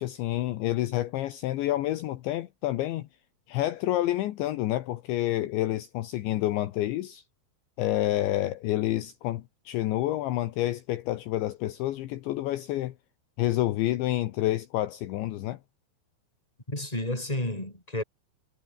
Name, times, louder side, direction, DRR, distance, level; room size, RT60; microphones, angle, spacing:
voice 1, 0.0-3.1 3.5-7.2 7.8-12.9 13.4-15.6, left 15 dB, 70° left, 3.3 m, -28 dB
voice 2, 16.7-18.0, left 1 dB, 5° left, 5.8 m, -31 dB
omnidirectional pair, 5.8 m